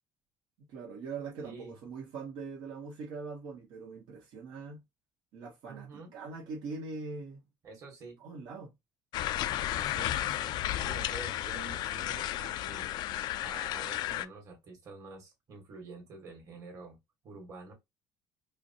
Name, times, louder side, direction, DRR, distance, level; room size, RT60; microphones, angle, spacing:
voice 1, 0.6-4.8 5.3-7.4 8.2-8.7, right 4 dB, 70° right, 1.4 m, -42 dB
voice 2, 1.4-1.8 5.7-6.1 7.6-8.2 9.7-13.0 13.4-17.0 17.2-17.7, right 3 dB, 40° right, 1.8 m, -48 dB
sound 1, 9.1-14.3, left 13 dB, 60° left, 0.3 m, -33 dB
4.6 x 2.2 x 2.8 m
cardioid pair, 150°, 8 cm